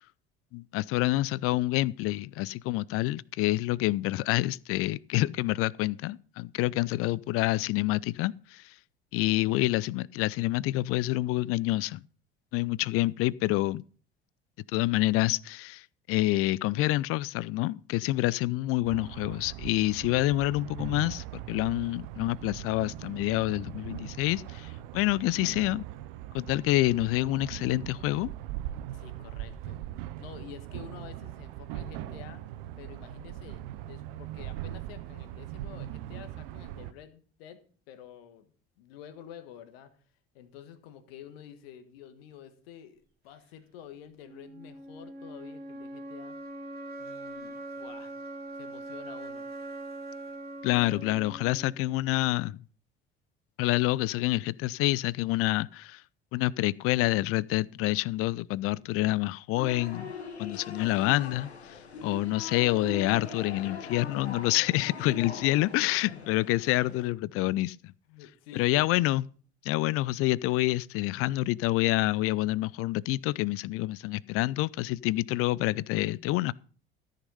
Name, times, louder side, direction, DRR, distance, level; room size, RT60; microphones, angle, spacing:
voice 1, 0.5-8.7 9.1-12.0 12.5-13.8 14.7-25.8 26.3-28.3 50.6-52.6 53.6-56.0 56.3-60.1 60.4-67.9 68.5-69.3 69.6-76.5, left 18 dB, 45° left, 0.4 m, -27 dB
sound 1, 18.8-36.9, right 14 dB, 60° right, 0.7 m, -40 dB
voice 2, 28.9-29.8 30.2-32.4 32.8-38.5 38.8-39.9 40.3-46.3 47.0-48.1 48.5-49.5 65.1-66.2 68.1-68.9, left 10 dB, 65° left, 1.5 m, -49 dB
sound 2, 44.2-52.2, right 2 dB, 30° right, 2.7 m, -42 dB
sound 3, 59.6-67.1, left 4 dB, 85° left, 1.2 m, -42 dB
13.5 x 6.6 x 5.4 m
figure-of-eight pair, 60°, 32 cm